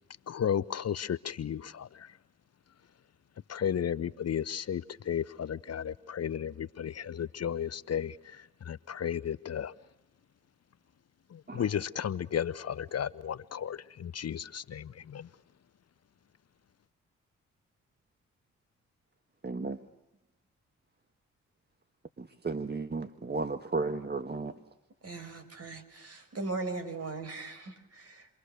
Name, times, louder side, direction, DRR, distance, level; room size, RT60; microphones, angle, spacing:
voice 1, 0.3-2.2 3.5-9.7 11.3-15.3, left 8 dB, 50° left, 0.9 m, -34 dB
voice 2, 19.4-19.8 22.4-24.5, right 3 dB, 30° right, 1.6 m, -33 dB
voice 3, 25.0-28.3, right 3 dB, 50° right, 5.4 m, -39 dB
29.0 x 23.0 x 6.7 m
hypercardioid pair, 40°, 31 cm